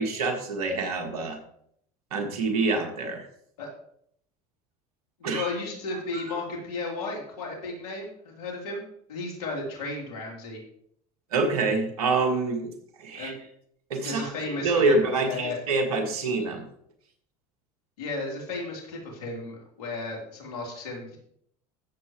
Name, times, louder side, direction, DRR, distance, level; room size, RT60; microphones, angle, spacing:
voice 1, 0.0-1.4 2.1-3.3 5.2-5.5 6.1-6.2 11.3-12.7 13.0-13.3 13.9-14.3 14.6-16.6, right 3 dB, 90° right, 4 dB, 1.9 m, -26 dB
voice 2, 5.2-8.8 9.1-10.6 13.1-13.4 14.0-15.6 18.0-21.2, left 3 dB, 85° left, -1 dB, 3.4 m, -34 dB
15.0 x 7.0 x 3.1 m, 0.68 s
hypercardioid pair, 80°, 19 cm